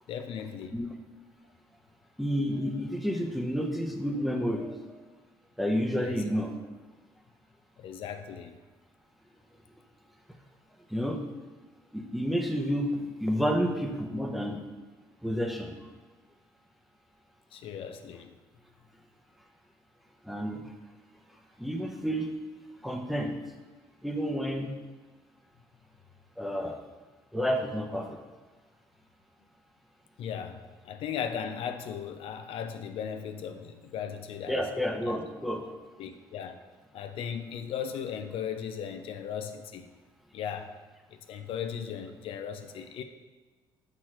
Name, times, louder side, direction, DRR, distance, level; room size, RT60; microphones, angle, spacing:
voice 1, 0.1-0.8 6.0-6.4 7.8-8.6 17.5-18.3 30.2-34.7 35.0-35.2 36.0-36.7 36.9-39.9 40.3-40.7 41.1-43.0, left 8 dB, 65° left, 7 dB, 0.5 m, -37 dB
voice 2, 2.2-5.0 5.6-6.6 10.9-11.2 11.9-14.6 15.2-15.7 20.2-20.7 21.6-22.3 22.8-23.4 24.0-24.7 26.4-26.8 27.3-28.2 34.5-35.7, equal, ahead, 2 dB, 0.8 m, -30 dB
6.2 x 5.9 x 3.1 m, 1.3 s
supercardioid pair, 80°, 10 cm